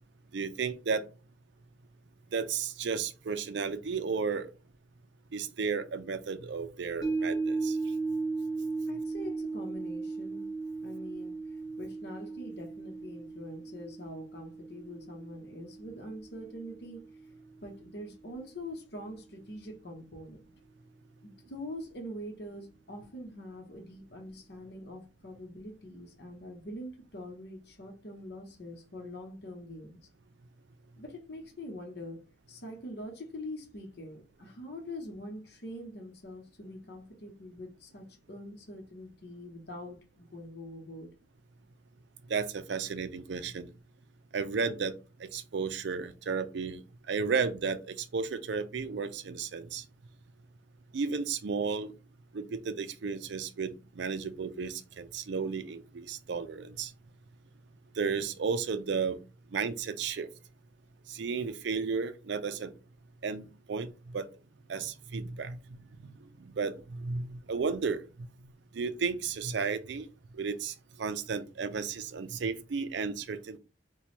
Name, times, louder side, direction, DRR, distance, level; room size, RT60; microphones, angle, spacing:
voice 1, 0.3-1.1 2.3-4.5 5.3-7.8 42.3-43.7 44.3-44.9 45.2-46.8 47.1-49.8 50.9-51.9 52.3-56.9 58.0-59.2 59.5-60.3 61.1-62.7 63.2-64.3 64.7-65.6 66.5-68.0 68.7-70.1 70.4-73.6, right 5 dB, 65° right, 0.4 m, -33 dB
sound 1, 7.0-17.4 17.8-17.9, right 3 dB, 15° left, 0.9 m, -36 dB
voice 2, 8.9-10.5 10.8-11.4 11.8-17.1 17.6-20.4 21.2-30.0 31.0-32.2 32.5-41.1, left 1 dB, 55° left, 0.8 m, -44 dB
3.0 x 2.2 x 4.1 m
head